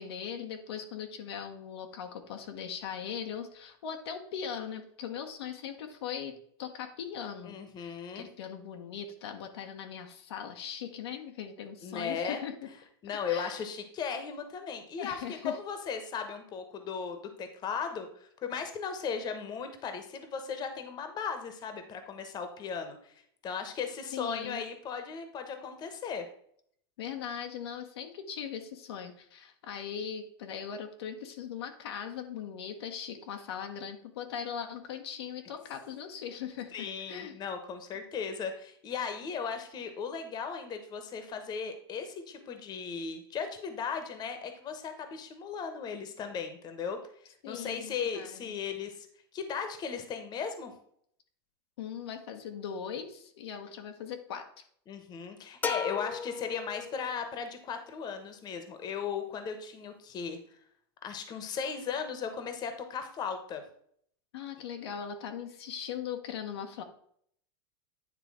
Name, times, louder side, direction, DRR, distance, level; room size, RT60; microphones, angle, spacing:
voice 1, 0.0-6.3 6.6-12.5 13.3-13.6 15.0-15.6 24.1-24.6 27.0-37.4 47.4-48.5 51.8-54.6 64.3-66.8, left 8 dB, 75° left, 4 dB, 1.1 m, -40 dB
voice 2, 7.4-8.3 11.8-12.4 13.0-23.1 23.4-26.2 36.7-47.0 47.5-49.1 49.3-50.7 54.9-60.4 61.0-63.6, left 6 dB, 30° left, 7 dB, 1.1 m, -37 dB
sound 1, 55.6-57.4, left 6 dB, 15° left, 0.4 m, -35 dB
9.5 x 3.3 x 4.8 m, 0.65 s
supercardioid pair, 125°, 13 cm